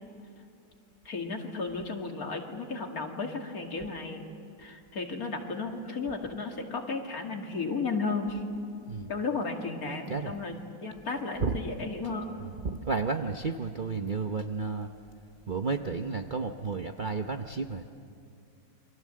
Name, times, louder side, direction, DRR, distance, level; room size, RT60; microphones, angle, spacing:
voice 1, 1.1-4.3 4.6-8.4 9.1-12.3, left 4 dB, 45° left, 3 dB, 2.6 m, -34 dB
voice 2, 12.4-14.9 15.5-17.9, right 4 dB, 85° right, 5 dB, 0.4 m, -32 dB
28.5 x 24.0 x 7.6 m, 2.5 s
omnidirectional pair, 2.2 m